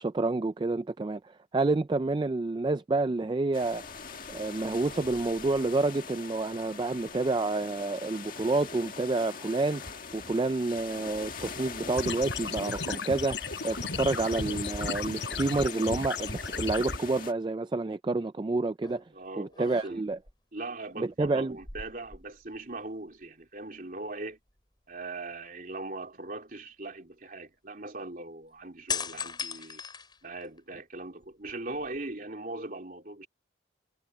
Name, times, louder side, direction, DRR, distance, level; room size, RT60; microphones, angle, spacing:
voice 1, 0.0-3.8 4.3-9.8 10.1-19.0 19.4-20.2 21.0-21.6, right 3 dB, 25° right, 0.3 m, -29 dB
sound 1, 3.5-17.3, left 5 dB, 45° left, 1.8 m, -42 dB
sound 2, 12.0-17.0, left 4 dB, 70° left, 5.3 m, -35 dB
sound 3, 18.8-19.1 19.5-20.3 21.5-22.8 23.1-23.2 28.9-30.7 31.2-32.1, left 6 dB, 25° left, 6.5 m, -38 dB
voice 2, 19.1-20.0 20.5-24.4 24.9-29.8 30.2-33.3, right 2 dB, 45° right, 3.3 m, -40 dB
head